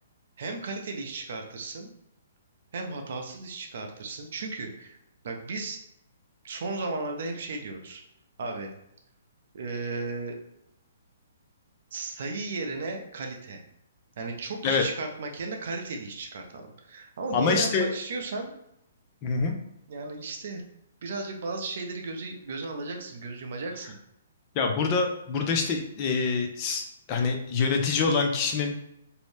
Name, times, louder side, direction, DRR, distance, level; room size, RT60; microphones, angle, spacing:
voice 1, 0.4-1.9 2.7-5.0 5.2-5.8 6.4-8.0 8.4-8.7 9.5-10.4 11.9-13.6 14.2-18.5 19.9-20.6 21.0-24.0, right 3 dB, 60° right, 3 dB, 0.5 m, -35 dB
voice 2, 17.3-17.9 19.2-19.6 24.5-28.8, left 4 dB, 35° left, 3 dB, 0.4 m, -25 dB
2.7 x 2.0 x 3.1 m, 0.80 s
hypercardioid pair, 140°, 0 cm